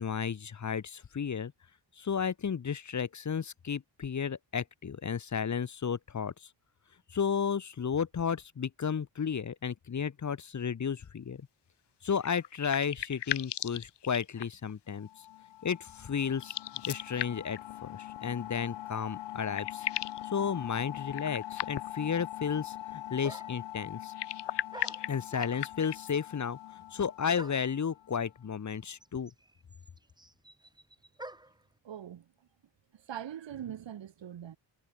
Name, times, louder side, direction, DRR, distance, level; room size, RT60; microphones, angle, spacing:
voice 1, 0.0-1.5 2.0-6.5 7.1-11.4 12.0-15.3 15.6-16.5 16.9-19.9 20.2-24.1 25.1-26.6 26.9-29.3, left 7 dB, 40° left, 1.7 m, -33 dB
sound 1, 12.2-14.7 16.3-17.6 19.0-19.1 19.3-20.3 21.1-22.1 24.0-26.2, left 11 dB, 70° left, 1.4 m, -37 dB
sound 2, 15.0-28.4, left 14 dB, 85° left, 0.8 m, -43 dB
sound 3, 22.7-22.8 23.2-23.7 24.7-25.9 27.4-27.8 28.7-28.8 29.0-31.6, right 2 dB, 10° right, 2.7 m, -47 dB
voice 2, 31.8-32.3 32.9-34.6, right 10 dB, 80° right, 7.6 m, -42 dB
wide cardioid pair, 150°, 43 cm